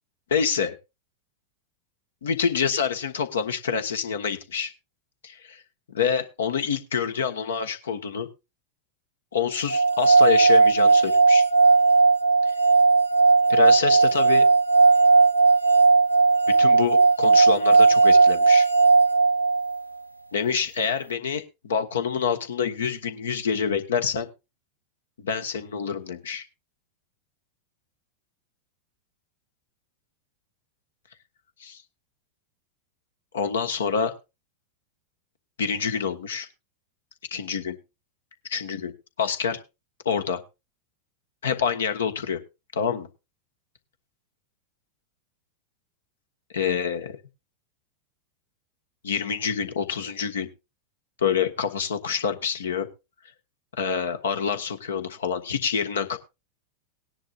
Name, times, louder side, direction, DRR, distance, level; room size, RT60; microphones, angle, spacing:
voice 1, 0.3-0.7 2.2-4.7 5.2-5.6 5.9-8.3 9.3-11.4 13.5-14.5 16.5-18.7 20.3-24.3 25.2-26.4 31.6-31.8 33.3-34.1 35.6-36.5 37.3-37.8 38.4-39.6 40.0-40.4 41.4-42.4 42.7-43.1 46.5-47.2 49.0-50.5 51.2-52.9 53.8-56.2, left 7 dB, 65° left, 8 dB, 1.2 m, -27 dB
sound 1, 9.7-19.8, right 4 dB, 90° right, 0.7 m, -17 dB
18.5 x 10.0 x 2.4 m, 0.26 s
figure-of-eight pair, 90°, 0 cm